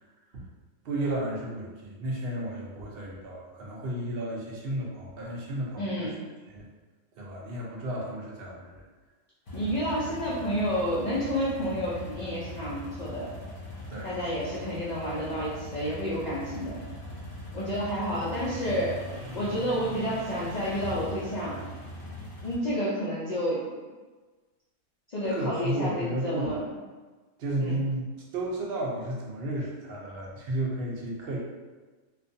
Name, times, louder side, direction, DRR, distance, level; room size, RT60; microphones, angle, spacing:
voice 1, 0.8-6.1 6.5-6.7 7.2-8.8 13.9-14.1 25.2-26.6 27.4-28.1 28.3-31.4, right 1 dB, 60° right, -3 dB, 0.6 m, -33 dB
voice 2, 5.8-6.2 9.5-13.3 14.0-16.8 17.5-19.0 19.3-21.6 22.4-23.6 25.1-26.6 27.6-27.8, equal, 90° left, -10 dB, 0.3 m, -30 dB
sound 1, 9.5-22.6, equal, 50° left, 0.8 m, -40 dB
2.4 x 2.2 x 2.6 m, 1.3 s
omnidirectional pair, 1.4 m